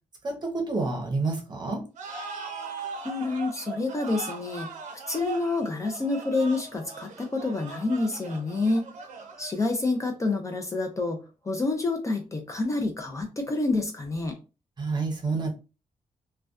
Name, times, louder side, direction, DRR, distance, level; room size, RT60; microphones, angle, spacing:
voice 1, 0.2-1.8 14.8-15.5, right 3 dB, 35° right, 2 dB, 0.6 m, -28 dB
sound 1, 2.0-9.8, right 4 dB, 75° right, 0.5 m, -40 dB
voice 2, 3.0-4.7 5.1-8.9 9.4-11.2 11.4-14.4, left 3 dB, 25° left, 4 dB, 0.4 m, -28 dB
2.5 x 2.1 x 2.3 m, 0.31 s
wide cardioid pair, 150°, 13 cm